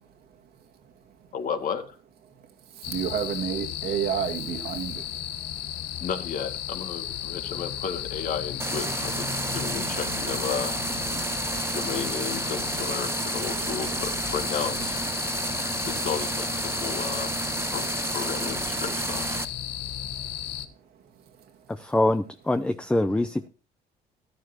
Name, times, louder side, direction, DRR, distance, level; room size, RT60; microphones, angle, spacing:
voice 1, 1.3-2.0 6.0-9.3 9.5-10.7 11.7-15.0 15.8-17.3 17.7-19.4, left 6 dB, 55° left, 2.1 m, -33 dB
voice 2, 2.7-5.1, right 8 dB, 70° right, 2.1 m, -29 dB
sound 1, 2.8-20.7, left 11 dB, 90° left, 1.3 m, -34 dB
sound 2, 8.6-19.4, right 3 dB, 15° right, 1.0 m, -31 dB
voice 3, 21.7-23.5, left 1 dB, 5° left, 0.6 m, -24 dB
14.0 x 11.0 x 2.9 m
cardioid pair, 110°, 17 cm